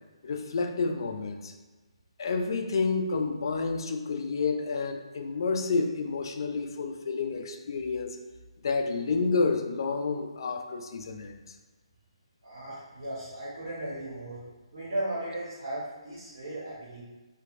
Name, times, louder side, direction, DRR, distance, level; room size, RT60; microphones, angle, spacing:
voice 1, 0.2-1.5 2.2-8.2 8.6-11.4, left 4 dB, 50° left, 5 dB, 0.3 m, -29 dB
voice 2, 12.4-14.4 14.7-17.0, right 1 dB, 45° right, -9 dB, 1.1 m, -36 dB
3.0 x 2.5 x 2.5 m, 1.2 s
hypercardioid pair, 165°, 3 cm